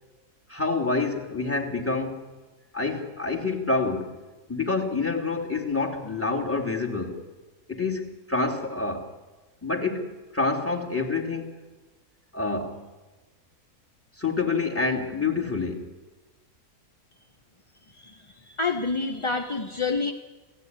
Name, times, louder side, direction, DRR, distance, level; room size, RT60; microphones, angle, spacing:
voice 1, 0.5-2.3 2.7-4.2 4.5-7.2 7.7-9.1 9.6-11.6 12.3-12.9 14.2-15.9, left 3 dB, 10° left, 2.9 m, -27 dB
voice 2, 17.9-20.1, left 4 dB, 25° left, 0.7 m, -28 dB
29.5 x 17.0 x 9.6 m
omnidirectional pair, 1.7 m